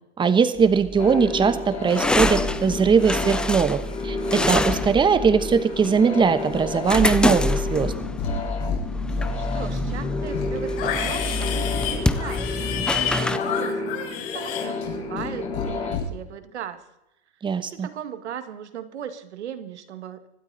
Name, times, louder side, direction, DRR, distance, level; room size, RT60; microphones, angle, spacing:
voice 1, 0.2-7.9 17.4-17.9, right 6 dB, 15° right, 12 dB, 1.2 m, -20 dB
sound 1, 0.6-13.4, left 2 dB, 5° left, 0.5 m, -27 dB
Build Up Die Down Loop, 1.0-16.0, left 3 dB, 20° left, 3.6 m, -31 dB
Livestock farm animals working animals, 7.7-8.3 8.6-9.3 9.7-15.3 15.5-16.1, left 9 dB, 55° left, 5.5 m, -30 dB
voice 2, 9.4-13.8 14.3-16.9 17.6-20.2, right 9 dB, 85° right, 10 dB, 2.0 m, -37 dB
25.0 x 12.5 x 4.1 m, 0.88 s
hypercardioid pair, 130°, 33 cm